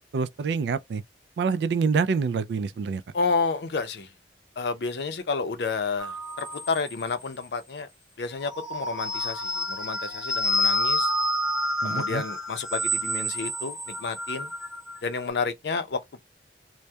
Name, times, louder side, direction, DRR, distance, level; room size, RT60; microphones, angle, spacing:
voice 1, 0.1-1.0 1.4-3.0 11.8-12.2, right 5 dB, 75° right, 0.3 m, -26 dB
voice 2, 3.1-4.1 4.6-7.9 8.2-11.1 11.8-14.5 15.0-16.2, left 4 dB, 70° left, 0.5 m, -30 dB
sound 1, 6.0-7.4 8.3-15.0, equal, 5° right, 0.6 m, -29 dB
2.2 x 2.1 x 2.7 m
head